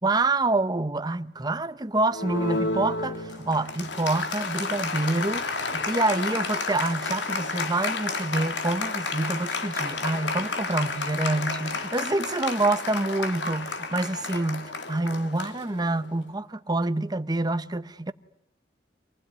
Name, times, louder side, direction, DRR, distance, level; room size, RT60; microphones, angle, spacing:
voice 1, 0.0-5.4 5.7-18.1, right 2 dB, 25° right, 1.0 m, -27 dB
Applause, 2.1-16.2, left 3 dB, 85° left, 2.7 m, -31 dB
27.0 x 19.5 x 9.7 m
head